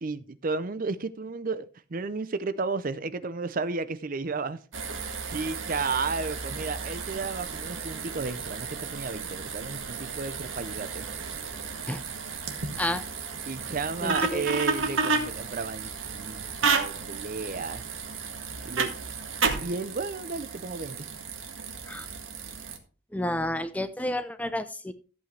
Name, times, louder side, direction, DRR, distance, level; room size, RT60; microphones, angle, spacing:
voice 1, 0.0-4.6 5.3-11.1 13.5-17.8 18.6-18.9 19.6-21.1, right 4 dB, 40° right, 0.6 m, -33 dB
sound 1, 4.7-22.8, right 4 dB, 70° right, 1.7 m, -33 dB
voice 2, 14.0-14.5 21.9-22.1 23.1-24.9, left 1 dB, 5° left, 0.6 m, -30 dB
14.5 x 8.2 x 3.3 m
head